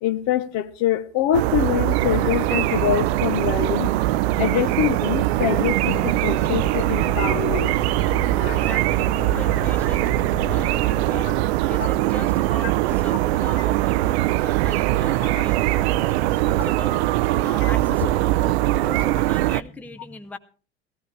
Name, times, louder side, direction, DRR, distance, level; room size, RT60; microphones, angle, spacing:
voice 1, 0.0-3.9 4.4-7.7 8.4-8.7 12.6-12.7 17.6-17.7, left 11 dB, 55° left, 1.0 m, -24 dB
sound 1, 1.3-19.6, right 16 dB, 70° right, 0.5 m, -21 dB
Gull seagull, 5.7-11.6, left 4 dB, 35° left, 1.9 m, -35 dB
voice 2, 8.5-10.1 10.5-11.4 11.7-17.1 17.4-20.4, left 3 dB, 5° left, 0.6 m, -39 dB
15.5 x 14.5 x 3.2 m
hypercardioid pair, 80°, 33 cm